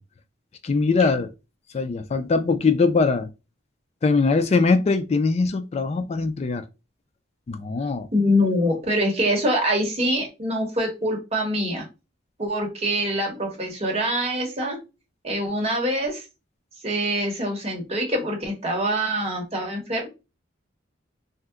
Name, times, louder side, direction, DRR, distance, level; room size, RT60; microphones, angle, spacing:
voice 1, 0.6-1.3 1.7-3.3 4.0-6.6 7.5-8.1, left 4 dB, 35° left, 0.3 m, -21 dB
voice 2, 8.1-11.9 12.4-14.8 15.2-16.2 16.8-20.1, equal, 35° right, 1.0 m, -24 dB
2.7 x 2.1 x 3.5 m
head